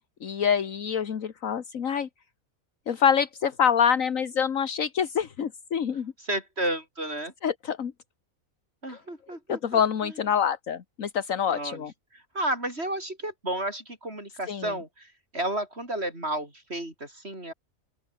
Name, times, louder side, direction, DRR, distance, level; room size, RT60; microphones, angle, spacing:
voice 1, 0.2-2.1 2.9-6.1 7.4-7.9 8.9-9.0 9.5-11.9 14.5-14.7, left 8 dB, 70° left, 1.7 m, -26 dB
voice 2, 6.2-7.3 8.8-10.2 11.5-11.8 12.3-17.5, right 1 dB, 45° right, 7.8 m, -32 dB
open air
omnidirectional pair, 1.5 m